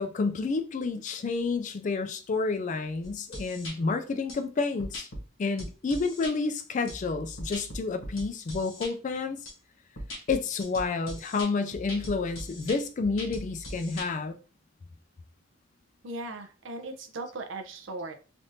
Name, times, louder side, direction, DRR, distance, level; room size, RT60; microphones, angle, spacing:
voice 1, 0.0-5.1 5.4-9.4 10.3-14.4, left 4 dB, 35° left, 0.3 m, -30 dB
voice 2, 0.9-1.3 16.0-18.1, right 2 dB, 65° right, 0.5 m, -39 dB
sound 1, 3.0-3.7 4.3-4.4 4.8-5.2 5.6-6.3 6.9-8.9 9.5-9.6 10.0-14.1, left 1 dB, 70° left, 1.1 m, -40 dB
3.4 x 2.5 x 2.6 m
head